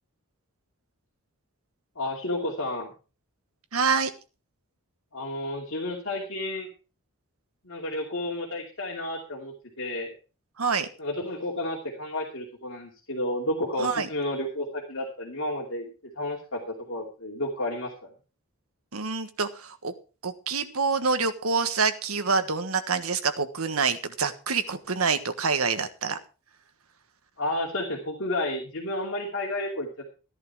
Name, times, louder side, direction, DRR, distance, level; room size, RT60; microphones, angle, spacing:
voice 1, 2.0-2.9 5.1-6.7 7.6-10.1 11.0-15.9 16.2-17.9 27.4-30.1, left 1 dB, 60° left, -2 dB, 2.7 m, -31 dB
voice 2, 3.7-4.1 10.6-10.9 13.8-14.1 18.9-19.9 20.2-26.2, right 5 dB, 75° right, 9 dB, 1.4 m, -26 dB
14.0 x 10.5 x 4.7 m, 0.34 s
head